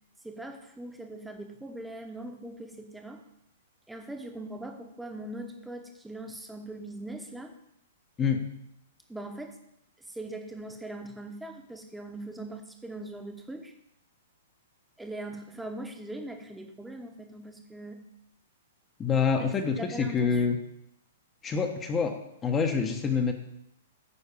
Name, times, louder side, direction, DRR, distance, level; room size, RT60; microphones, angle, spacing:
voice 1, 0.2-3.2 3.9-7.5 9.1-9.6 10.1-13.7 15.0-18.0 19.4-19.5 19.8-20.4, right 1 dB, 5° right, 4 dB, 1.1 m, -41 dB
voice 2, 19.0-20.6 21.4-23.3, left 5 dB, 20° left, 4 dB, 1.0 m, -26 dB
9.6 x 4.5 x 6.8 m, 0.79 s
hypercardioid pair, 135°, 0 cm